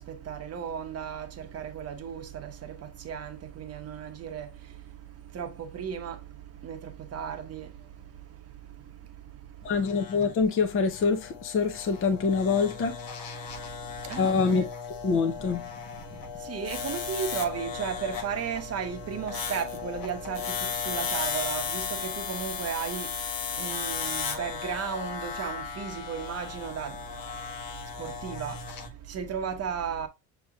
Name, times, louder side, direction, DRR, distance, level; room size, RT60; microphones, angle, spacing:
voice 1, 0.0-9.7 13.3-14.3 16.0-30.1, right 7 dB, 35° right, 0.9 m, -36 dB
sound 1, 9.6-28.9, left 7 dB, 55° left, 1.2 m, -36 dB
voice 2, 9.6-13.0 14.2-14.7 15.0-15.6, left 5 dB, 30° left, 0.7 m, -25 dB
6.7 x 3.0 x 2.3 m
cardioid pair, 125°, 42 cm